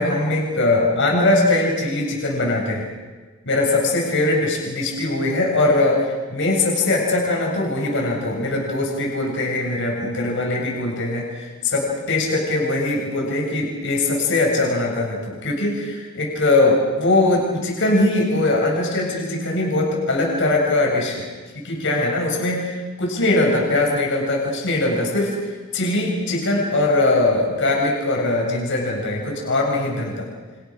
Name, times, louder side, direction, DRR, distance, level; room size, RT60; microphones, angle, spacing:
voice 1, 0.0-2.9 3.4-21.3 21.6-25.4 25.7-30.3, left 2 dB, 60° left, -1 dB, 7.5 m, -21 dB
29.0 x 28.5 x 6.6 m, 1.3 s
head